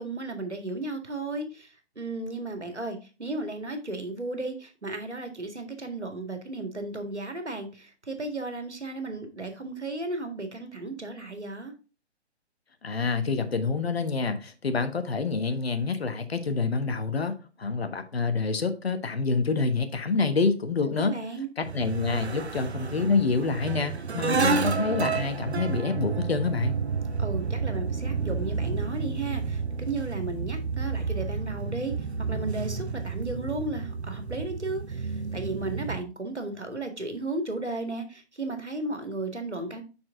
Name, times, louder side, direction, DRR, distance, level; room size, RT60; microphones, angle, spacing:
voice 1, 0.0-11.7 21.0-21.5 27.2-39.8, right 2 dB, 85° right, 2.0 m, -34 dB
voice 2, 12.8-21.1 21.6-26.8, left 4 dB, 65° left, 1.4 m, -27 dB
sound 1, 21.6-36.0, right 5 dB, 70° right, 0.9 m, -30 dB
6.5 x 5.9 x 3.7 m
figure-of-eight pair, 140°, 34 cm